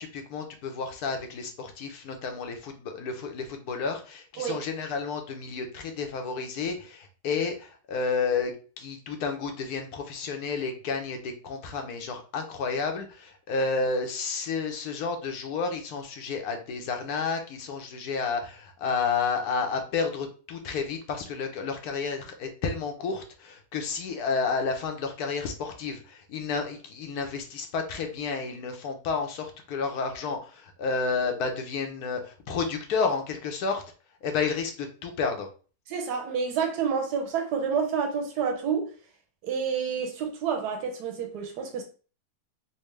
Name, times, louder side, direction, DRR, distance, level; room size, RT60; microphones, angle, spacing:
voice 1, 0.0-33.8 34.2-35.5, left 5 dB, 75° left, 1.2 m, -31 dB
voice 2, 35.9-38.9 39.4-41.8, right 6 dB, 90° right, 1.3 m, -29 dB
4.2 x 2.1 x 3.1 m
omnidirectional pair, 1.7 m